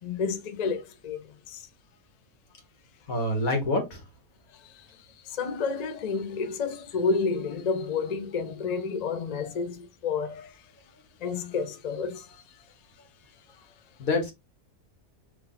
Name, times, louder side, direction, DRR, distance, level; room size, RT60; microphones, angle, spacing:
voice 1, 0.0-1.7 4.5-5.0 5.2-10.6 11.2-12.4, left 5 dB, 50° left, 0.5 m, -30 dB
voice 2, 3.1-4.0 14.0-14.3, left 2 dB, 85° left, 1.9 m, -26 dB
3.6 x 2.9 x 3.7 m
omnidirectional pair, 1.4 m